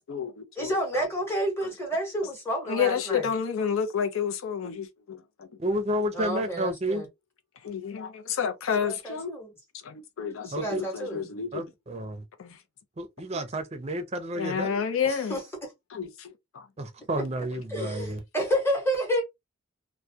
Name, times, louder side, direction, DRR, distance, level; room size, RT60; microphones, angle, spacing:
voice 1, 0.0-1.1 1.6-1.7 2.7-5.5 7.6-9.4 9.7-11.6 12.4-12.6 14.3-15.4 15.9-16.7 17.5-17.9, left 7 dB, 80° left, 0.5 m, -30 dB
voice 2, 0.6-3.3 6.1-7.1 8.8-9.5 10.4-11.3 15.0-15.4 17.7-19.2, right 1 dB, 10° left, 0.9 m, -30 dB
voice 3, 5.6-7.0 10.5-10.8 11.5-12.2 13.0-14.8 16.8-18.2, right 1 dB, 30° right, 0.4 m, -31 dB
2.2 x 2.1 x 2.6 m
head